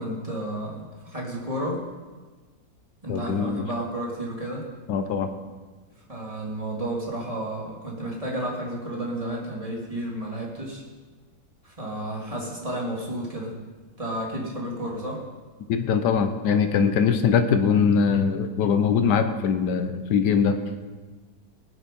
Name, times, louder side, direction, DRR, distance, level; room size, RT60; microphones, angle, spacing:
voice 1, 0.0-1.8 3.0-4.7 6.1-10.8 11.6-13.6 14.0-15.2, right 1 dB, 20° right, -2 dB, 2.5 m, -32 dB
voice 2, 3.1-3.6 4.9-5.3 15.7-20.5, left 6 dB, 75° left, 8 dB, 1.5 m, -22 dB
18.0 x 8.3 x 5.4 m, 1.4 s
omnidirectional pair, 1.9 m